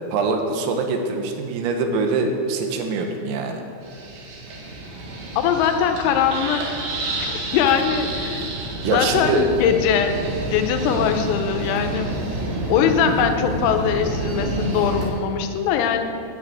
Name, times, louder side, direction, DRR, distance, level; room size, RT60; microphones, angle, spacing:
voice 1, 0.1-3.6 8.8-9.5, right 3 dB, 85° right, 4 dB, 3.8 m, -23 dB
sound 1, 3.8-15.1, right 2 dB, 55° right, 2.8 m, -29 dB
voice 2, 5.4-6.8 7.2-8.5 8.8-10.2 10.5-12.1 12.7-16.0, left 8 dB, 90° left, 6 dB, 3.6 m, -21 dB
9.8 x 8.9 x 8.3 m, 2.5 s
omnidirectional pair, 5.9 m